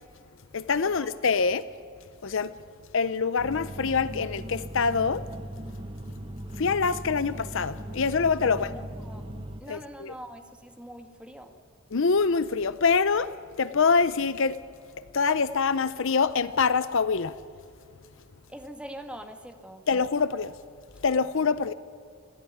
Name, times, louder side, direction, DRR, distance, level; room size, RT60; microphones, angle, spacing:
voice 1, 0.5-1.6 2.2-2.5 2.9-5.2 6.6-8.7 9.7-10.1 11.9-14.6 15.1-17.4 19.9-20.5 21.0-21.7, left 5 dB, 60° left, 0.6 m, -25 dB
sound 1, 3.4-9.6, right 1 dB, 25° right, 1.3 m, -39 dB
voice 2, 8.6-9.3 9.6-11.5 18.5-19.8, equal, 5° right, 1.7 m, -43 dB
26.0 x 16.5 x 10.0 m
head